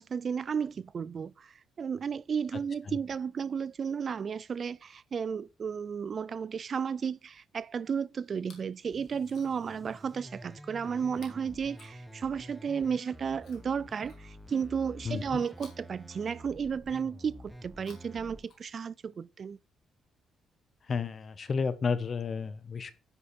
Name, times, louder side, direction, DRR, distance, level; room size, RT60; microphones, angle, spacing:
voice 1, 0.0-19.6, right 6 dB, 45° right, 0.3 m, -33 dB
Chewing mastication, 8.3-8.8 9.1-9.8 11.1-12.5 13.4-14.6 15.5-16.8 17.6-19.1 20.0-20.1, left 5 dB, 65° left, 3.1 m, -60 dB
sound 1, 8.9-18.4, equal, ahead, 1.2 m, -49 dB
voice 2, 15.0-15.4 20.9-22.9, left 5 dB, 45° left, 1.1 m, -31 dB
9.9 x 5.0 x 4.3 m
cardioid pair, 90°, 0 cm